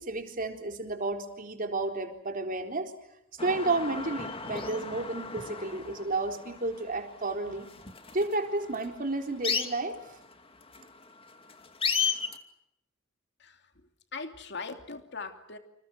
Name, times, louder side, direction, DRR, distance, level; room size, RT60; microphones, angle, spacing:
voice 1, 0.0-2.9 3.4-7.7 8.1-10.0, right 2 dB, 45° right, 4 dB, 4.0 m, -31 dB
sound 1, 3.4-12.4, left 6 dB, 30° left, 2.4 m, -35 dB
voice 2, 13.4-13.7 14.1-15.6, left 4 dB, 60° left, 6 dB, 2.7 m, -40 dB
29.5 x 28.0 x 6.5 m, 0.80 s
head